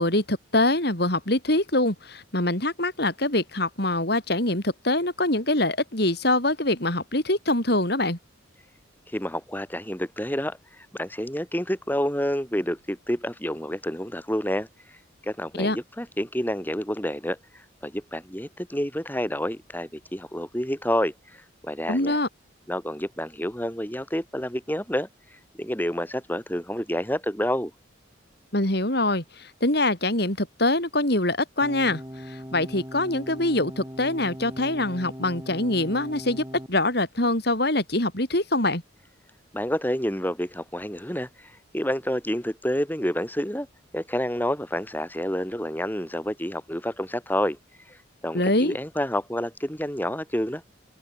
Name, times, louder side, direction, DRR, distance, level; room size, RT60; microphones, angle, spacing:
voice 1, 0.0-8.2 15.6-15.8 21.9-22.3 28.5-32.0 32.3-38.8 48.3-48.8, left 1 dB, 55° left, 4.8 m, -24 dB
voice 2, 9.1-10.6 10.9-14.7 15.3-17.4 17.8-21.1 21.6-22.2 22.7-25.1 25.6-27.7 39.5-41.3 41.7-43.7 43.9-47.6 48.2-50.6, equal, 10° left, 6.1 m, -28 dB
sound 1, 31.6-36.7, equal, 15° right, 7.4 m, -39 dB
open air
head